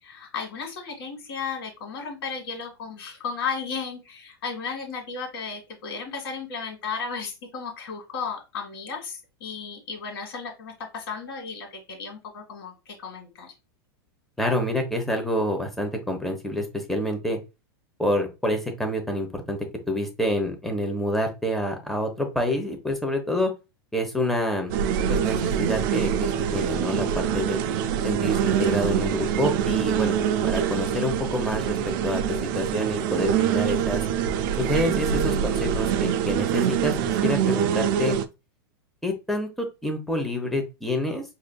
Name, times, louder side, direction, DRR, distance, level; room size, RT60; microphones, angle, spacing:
voice 1, 0.0-13.5, left 5 dB, 70° left, 2 dB, 1.6 m, -34 dB
voice 2, 14.4-17.4 18.0-19.6 19.9-23.5 23.9-24.7 25.1-27.6 28.0-30.1 30.4-31.8 32.0-32.2 32.5-34.0 34.6-38.2 39.0-41.2, left 1 dB, ahead, 3 dB, 1.0 m, -27 dB
sound 1, 24.7-38.3, right 8 dB, 55° right, 0.4 m, -25 dB
4.9 x 2.7 x 2.2 m, 0.27 s
hypercardioid pair, 110°, 13 cm